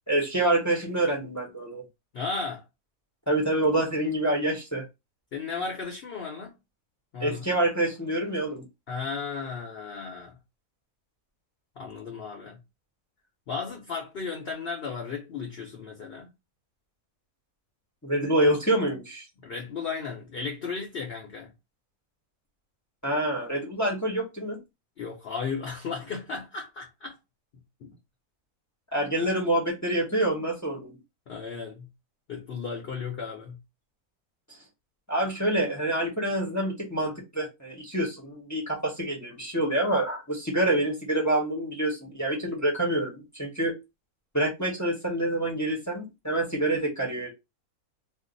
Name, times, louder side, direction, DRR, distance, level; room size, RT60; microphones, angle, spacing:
voice 1, 0.1-1.8 3.3-4.8 7.2-8.6 18.0-19.2 23.0-24.6 28.9-30.9 35.1-43.7 44.3-47.3, right 1 dB, 15° left, 0.6 m, -27 dB
voice 2, 2.1-2.6 5.3-6.6 7.1-7.4 8.9-10.3 11.8-12.6 13.5-16.3 19.4-21.5 25.0-27.2 27.8-28.0 31.3-31.9 32.3-33.6, left 5 dB, 55° left, 0.7 m, -35 dB
2.5 x 2.1 x 3.8 m
omnidirectional pair, 1.5 m